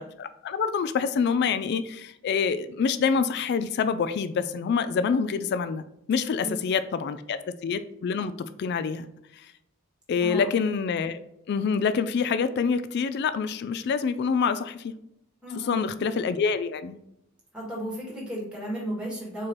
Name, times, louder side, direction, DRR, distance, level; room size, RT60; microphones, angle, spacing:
voice 1, 0.0-5.8 6.1-9.1 10.1-11.2 11.5-14.9 15.7-17.0, left 5 dB, 50° left, 12 dB, 0.3 m, -26 dB
voice 2, 10.2-10.5 15.4-15.9 17.5-19.5, right 1 dB, 5° right, -4 dB, 1.5 m, -34 dB
4.3 x 3.2 x 3.9 m, 0.79 s
head